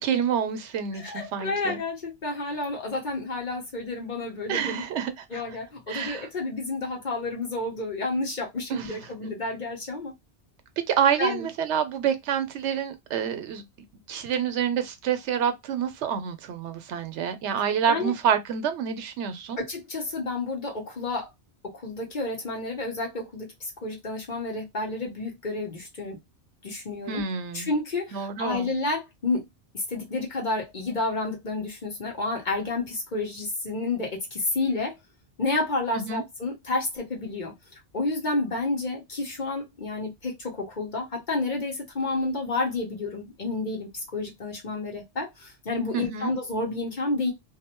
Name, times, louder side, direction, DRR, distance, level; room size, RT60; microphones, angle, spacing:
voice 1, 0.0-1.8 4.5-5.4 5.9-6.3 8.7-9.3 10.9-13.6 14.1-19.6 27.1-27.7 28.1-28.7 35.9-36.2 45.9-46.3, right 8 dB, 90° right, 0.9 m, -28 dB
voice 2, 0.9-4.8 5.3-10.1 11.2-11.5 17.9-18.1 19.6-21.3 21.8-26.2 26.6-27.2 27.5-29.5 29.7-35.0 35.4-37.5 37.9-47.3, left 2 dB, 45° left, 1.0 m, -30 dB
2.6 x 2.1 x 2.8 m
omnidirectional pair, 1.1 m